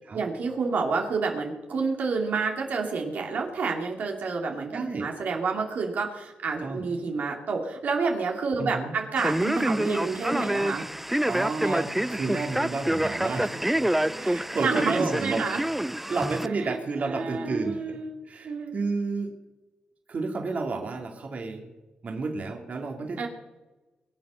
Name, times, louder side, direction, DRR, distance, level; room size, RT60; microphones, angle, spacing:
voice 1, 0.1-10.9 14.6-15.6 16.6-18.7 23.2-23.3, right 4 dB, 70° right, 1 dB, 2.5 m, -29 dB
voice 2, 4.7-5.1 6.6-6.9 8.6-8.9 11.3-15.5 16.1-18.0 18.2-19.3 20.1-21.7 22.0-23.3, right 3 dB, 55° right, 2 dB, 2.6 m, -31 dB
Male speech man speaking, 9.2-16.5, right 1 dB, 5° right, 0.4 m, -27 dB
22.5 x 7.8 x 6.3 m, 1.1 s
cardioid pair, 65°, 3 cm